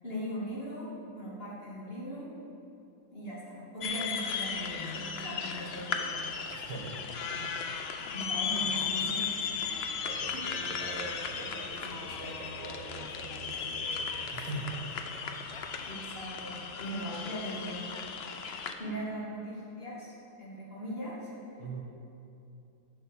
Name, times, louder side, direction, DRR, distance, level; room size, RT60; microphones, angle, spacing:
voice 1, 0.0-2.3 3.1-6.3 7.3-7.7 8.1-9.4 9.6-10.4 15.8-17.9 18.8-20.1 20.4-21.6, equal, 35° left, -7 dB, 2.8 m, -40 dB
sound 1, 3.8-18.7, left 6 dB, 55° left, 0.7 m, -36 dB
voice 2, 6.5-7.0 8.5-8.7 10.0-15.0 15.7-15.9 21.6-21.8, right 2 dB, 75° right, -1 dB, 2.3 m, -42 dB
10.5 x 6.2 x 7.3 m, 2.8 s
omnidirectional pair, 1.8 m